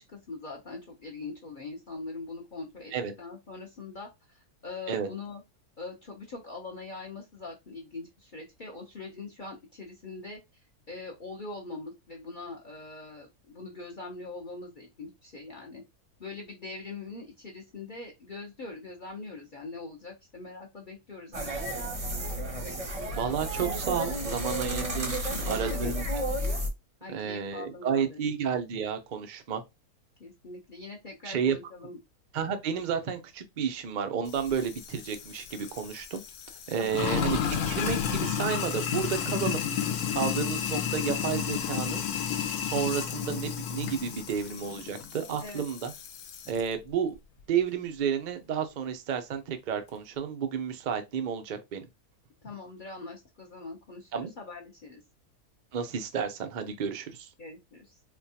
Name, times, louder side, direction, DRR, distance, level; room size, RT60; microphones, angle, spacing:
voice 1, 0.0-5.4 5.8-10.4 10.9-15.8 16.2-21.5 25.1-25.9 27.0-28.3 30.2-32.0 36.8-37.1 45.4-45.6 52.4-55.0 57.4-58.0, left 3 dB, 45° left, 0.6 m, -42 dB
sound 1, 21.3-26.7, equal, 35° right, 0.6 m, -32 dB
voice 2, 23.2-26.1 27.1-29.6 31.2-31.6 32.3-36.2 36.7-39.6 40.1-42.0 42.6-45.9 46.5-47.2 47.5-51.9 54.1-54.3 55.7-57.3, right 7 dB, 75° right, 0.4 m, -31 dB
Sink (filling or washing), 34.3-46.6, left 8 dB, 75° left, 1.1 m, -32 dB
4.3 x 2.2 x 2.7 m
omnidirectional pair, 1.6 m